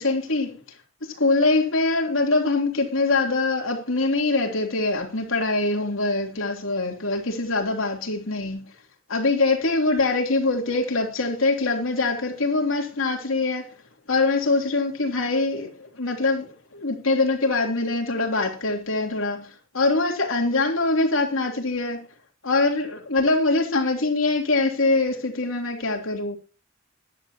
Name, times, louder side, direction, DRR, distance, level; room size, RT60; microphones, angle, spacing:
voice 1, 0.0-8.7 9.1-13.7 14.1-22.1 22.4-26.4, left 3 dB, 75° left, 3.2 m, -23 dB
14.0 x 11.0 x 2.9 m
head